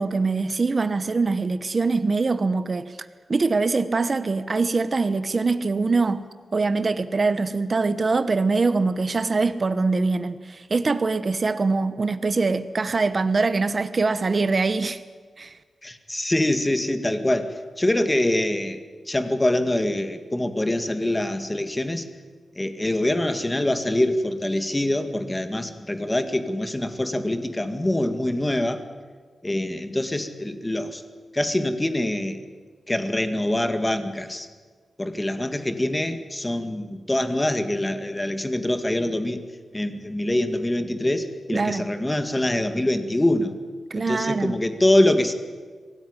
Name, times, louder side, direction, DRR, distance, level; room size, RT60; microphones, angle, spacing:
voice 1, 0.0-3.0 3.3-6.2 6.5-15.0 15.4-15.6 41.5-41.8 43.9-44.6, right 3 dB, 40° right, 1.0 m, -23 dB
voice 2, 15.8-18.8 19.1-22.0 22.6-28.8 29.4-31.0 31.3-32.4 32.9-34.5 35.0-39.4 39.7-43.5 44.0-45.3, left 1 dB, 15° left, 2.0 m, -24 dB
26.0 x 18.0 x 9.8 m
wide cardioid pair, 130°, 0 cm